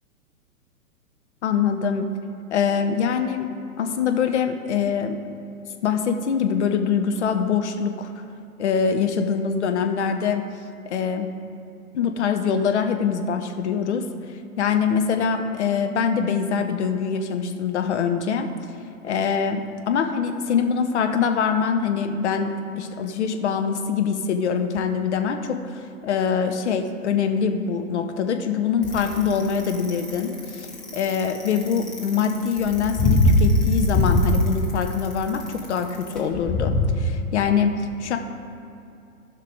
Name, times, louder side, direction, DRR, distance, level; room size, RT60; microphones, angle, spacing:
voice 1, 1.4-2.1 2.5-3.5 3.8-5.2 5.8-8.1 8.6-10.4 10.9-11.3 11.9-14.1 14.6-18.5 19.0-38.2, left 6 dB, 50° left, 6 dB, 1.0 m, -24 dB
Bicycle, 28.8-36.9, left 1 dB, ahead, 0.6 m, -22 dB
16.0 x 5.7 x 3.7 m, 2.7 s
figure-of-eight pair, 120°, 45 cm